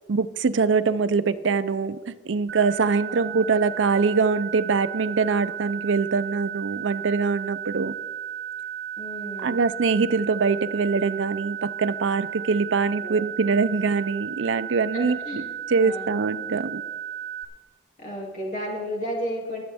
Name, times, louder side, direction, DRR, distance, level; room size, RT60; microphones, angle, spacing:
voice 1, 0.1-7.9 9.4-15.4 15.7-16.8, right 4 dB, 90° right, 15 dB, 0.5 m, -23 dB
sound 1, 2.5-17.4, right 9 dB, 55° right, 1.2 m, -34 dB
voice 2, 9.0-9.6 13.0-13.2 14.9-15.5 15.8-16.2 18.0-19.6, equal, 45° left, -2 dB, 2.7 m, -33 dB
23.0 x 7.9 x 3.5 m, 1.4 s
head